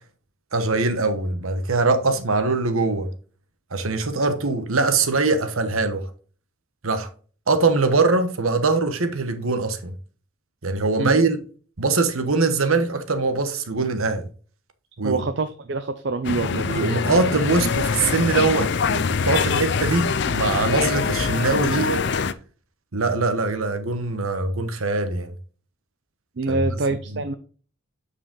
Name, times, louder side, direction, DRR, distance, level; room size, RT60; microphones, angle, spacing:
voice 1, 0.5-3.1 3.7-6.0 6.8-7.1 7.5-9.9 10.6-11.4 11.8-14.3 15.0-15.2 16.7-22.0 22.9-25.3 26.5-27.2, right 3 dB, 80° right, 1.1 m, -22 dB
voice 2, 15.0-16.7 26.4-27.3, right 3 dB, 55° right, 0.5 m, -25 dB
sound 1, 16.2-22.3, left 5 dB, 55° left, 0.5 m, -24 dB
8.7 x 4.9 x 3.8 m
head